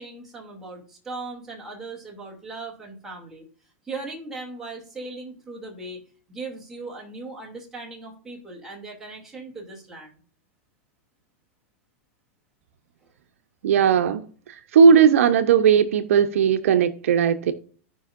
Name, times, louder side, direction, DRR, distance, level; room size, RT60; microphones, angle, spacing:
voice 1, 0.0-3.4 3.8-6.0 6.3-10.2, right 3 dB, 5° right, 2.9 m, -38 dB
voice 2, 13.6-17.5, right 7 dB, 80° right, 1.0 m, -18 dB
16.5 x 5.5 x 2.6 m
supercardioid pair, 150°, 7 cm